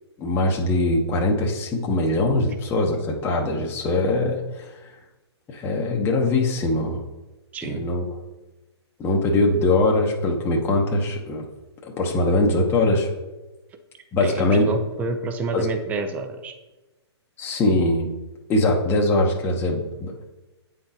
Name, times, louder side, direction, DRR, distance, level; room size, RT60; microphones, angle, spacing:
voice 1, 0.2-4.9 5.5-7.0 7.6-8.0 9.0-11.4 11.8-13.1 14.1-14.7 15.5-15.7 17.4-18.1 18.5-20.2, left 2 dB, 15° left, -1 dB, 0.8 m, -22 dB
voice 2, 7.5-7.9 14.2-16.5, right 4 dB, 10° right, 7 dB, 0.4 m, -29 dB
8.5 x 3.9 x 4.1 m, 1.1 s
hypercardioid pair, 140°, 14 cm